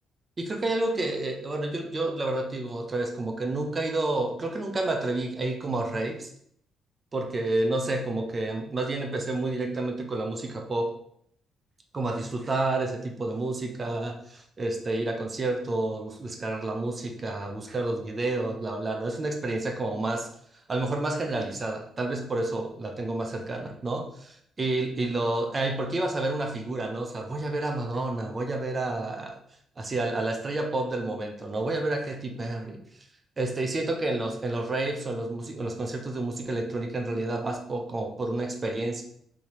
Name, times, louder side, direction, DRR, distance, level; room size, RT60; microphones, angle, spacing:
voice 1, 0.4-6.3 7.1-10.9 11.9-20.3 20.7-29.4 29.8-32.8 33.4-39.0, right 2 dB, 35° right, 3 dB, 0.5 m, -30 dB
3.4 x 2.8 x 3.0 m, 0.68 s
cardioid pair, 90°, 0 cm